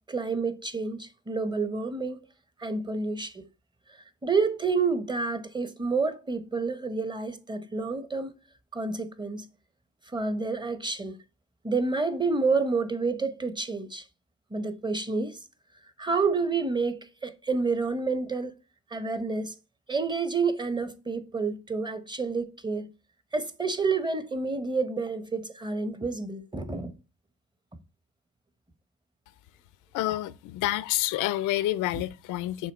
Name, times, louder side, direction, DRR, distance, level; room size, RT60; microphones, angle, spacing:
voice 1, 0.0-2.2 2.6-3.4 4.2-8.4 8.7-9.5 10.1-11.2 11.6-14.0 14.5-15.4 16.0-18.5 18.9-19.5 19.9-22.9 23.3-26.9, right 4 dB, 15° right, 0.8 m, -29 dB
voice 2, 29.9-32.7, left 15 dB, 90° left, 0.5 m, -28 dB
6.2 x 3.8 x 4.3 m
cardioid pair, 90°, 30 cm